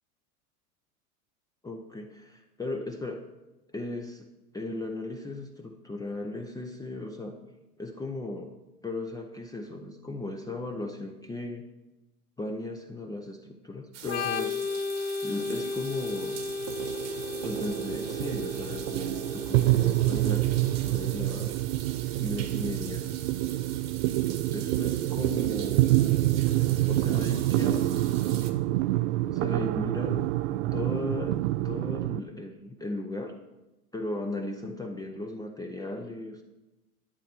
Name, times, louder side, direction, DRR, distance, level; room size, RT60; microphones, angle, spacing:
voice 1, 1.6-3.2 3.7-4.3 4.5-7.4 7.8-8.5 8.8-11.6 12.4-14.6 15.2-16.4 17.4-21.6 22.2-23.0 24.5-25.9 26.9-28.5 29.3-33.3 33.9-36.4, left 2 dB, 10° left, 3 dB, 0.6 m, -36 dB
sound 1, 13.9-28.5, right 9 dB, 35° right, 1.3 m, -44 dB
Organ, 14.0-21.5, left 4 dB, 50° left, 1.2 m, -35 dB
sound 2, 15.4-32.2, right 16 dB, 50° right, 0.5 m, -27 dB
11.0 x 8.3 x 4.5 m, 1.0 s
hypercardioid pair, 105°, 46 cm